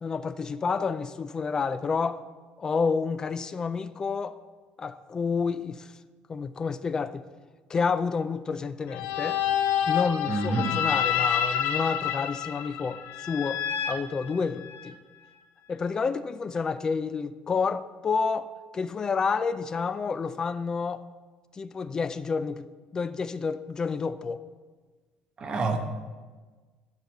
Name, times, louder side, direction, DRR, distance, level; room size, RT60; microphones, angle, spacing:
voice 1, 0.0-2.2 2.6-4.4 4.8-5.9 6.3-7.3 7.7-9.4 9.9-13.6 13.9-15.0 15.7-21.0 21.5-22.7 22.9-24.4, left 5 dB, 20° left, 13 dB, 0.4 m, -29 dB
sound 1, 8.9-14.9, left 9 dB, 90° left, 0.7 m, -28 dB
voice 2, 10.3-10.7 25.4-25.8, right 3 dB, 30° right, 4 dB, 1.1 m, -27 dB
10.5 x 5.1 x 7.7 m, 1.4 s
cardioid pair, 165°, 3 cm